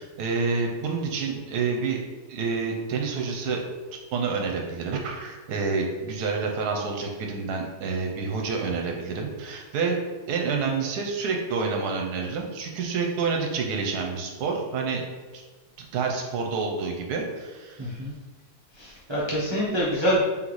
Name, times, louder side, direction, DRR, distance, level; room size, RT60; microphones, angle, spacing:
voice 1, 0.0-2.0 2.3-3.6 4.1-10.0 10.3-15.0 15.3-15.4 15.8-18.0, right 4 dB, 75° right, 2 dB, 1.1 m, -28 dB
voice 2, 17.8-18.1 18.8-20.2, equal, 35° right, -8 dB, 0.4 m, -26 dB
3.5 x 3.1 x 3.9 m, 1.3 s
omnidirectional pair, 1.8 m